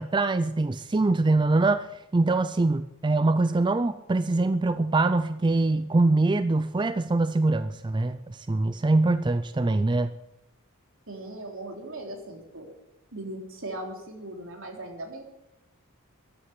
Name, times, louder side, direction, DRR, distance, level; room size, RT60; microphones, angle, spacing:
voice 1, 0.0-1.9 2.1-10.1, right 2 dB, 20° right, 12 dB, 0.4 m, -23 dB
voice 2, 11.1-12.7 13.1-15.2, right 1 dB, 65° right, 2 dB, 3.5 m, -38 dB
14.0 x 10.5 x 7.8 m, 0.90 s
head